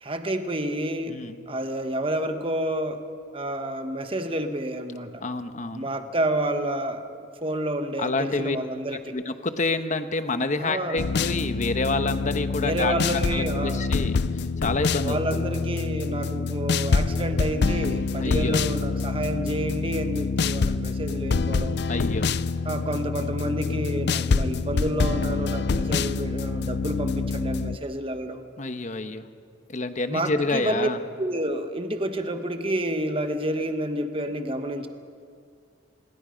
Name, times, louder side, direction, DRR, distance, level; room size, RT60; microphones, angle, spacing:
voice 1, 0.0-1.2 1.5-3.0 3.3-5.2 5.7-9.2 10.6-11.1 12.6-13.9 15.0-21.8 22.6-28.4 30.1-30.9 31.2-34.9, right 1 dB, 30° right, 7 dB, 1.3 m, -29 dB
voice 2, 1.1-1.4 5.2-5.9 8.0-8.6 9.1-15.4 18.2-18.6 21.9-22.3 28.6-29.2 29.7-31.0, left 3 dB, 40° left, 9 dB, 1.1 m, -28 dB
sound 1, 11.0-27.8, left 4 dB, 60° left, 0.5 m, -26 dB
26.5 x 21.0 x 5.2 m, 2.2 s
head